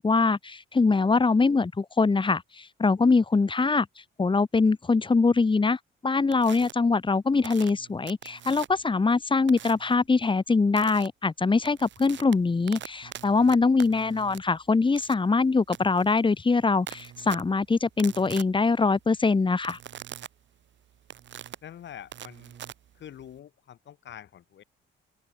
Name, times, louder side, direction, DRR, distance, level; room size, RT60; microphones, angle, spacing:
voice 1, 0.0-3.9 4.2-19.8, left 4 dB, 25° left, 2.3 m, -23 dB
sound 1, 6.3-6.7 7.4-8.9 9.5-9.9 10.8-11.1 11.5-23.4, right 10 dB, 65° right, 4.2 m, -44 dB
voice 2, 21.6-22.6 22.9-24.6, left 10 dB, 65° left, 6.9 m, -45 dB
open air
cardioid pair, 90°, 20 cm